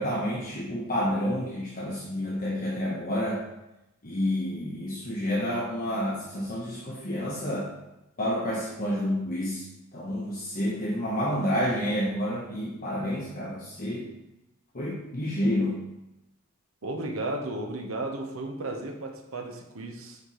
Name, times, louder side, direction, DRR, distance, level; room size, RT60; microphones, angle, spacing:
voice 1, 0.0-3.4 4.0-7.7 8.2-9.6 9.9-14.0 14.7-15.8, equal, 40° left, -5 dB, 1.1 m, -29 dB
voice 2, 16.8-20.2, right 2 dB, 70° right, 3 dB, 0.9 m, -34 dB
9.5 x 4.3 x 3.1 m, 0.94 s
head